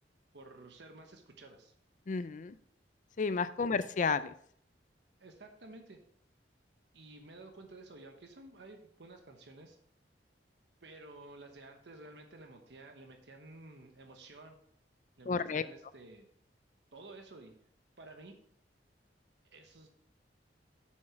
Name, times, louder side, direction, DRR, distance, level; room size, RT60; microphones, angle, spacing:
voice 1, 0.3-1.7 3.6-3.7 5.2-6.0 6.9-9.8 10.8-14.6 15.2-16.3 16.9-17.5 18.0-18.4 19.5-19.9, right 2 dB, 70° right, 4 dB, 1.1 m, -52 dB
voice 2, 2.1-2.6 3.2-4.3 15.3-15.6, left 5 dB, 45° left, 14 dB, 0.4 m, -32 dB
7.5 x 6.4 x 4.5 m, 0.64 s
head